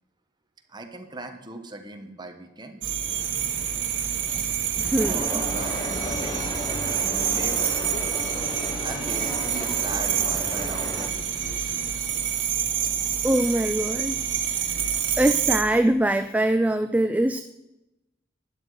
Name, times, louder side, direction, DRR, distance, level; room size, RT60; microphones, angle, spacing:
voice 1, 0.7-2.9 5.1-6.5 6.8-7.6 8.6-12.1 12.8-12.9, right 2 dB, 25° right, 5 dB, 1.2 m, -39 dB
sound 1, 2.8-15.6, right 9 dB, 80° right, 1.4 m, -27 dB
sound 2, 3.1-12.0, equal, 55° left, 3.9 m, -44 dB
voice 2, 4.8-5.4 13.2-14.1 15.2-17.4, right 1 dB, 10° right, 8 dB, 0.3 m, -22 dB
sound 3, 5.0-11.1, left 1 dB, 20° left, 0.9 m, -34 dB
12.5 x 10.5 x 4.9 m, 0.96 s
head